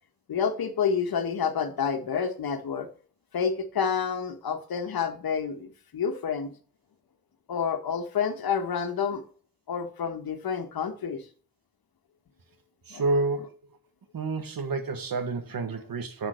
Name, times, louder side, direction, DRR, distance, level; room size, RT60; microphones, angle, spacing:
voice 1, 0.3-2.9 3.3-6.5 7.5-9.2 9.7-11.3 12.9-13.0, left 6 dB, 75° left, 1.4 m, -29 dB
voice 2, 12.9-13.5 14.1-16.3, right 3 dB, 70° right, 1.6 m, -29 dB
7.7 x 6.5 x 4.5 m
wide cardioid pair, 95°, 36 cm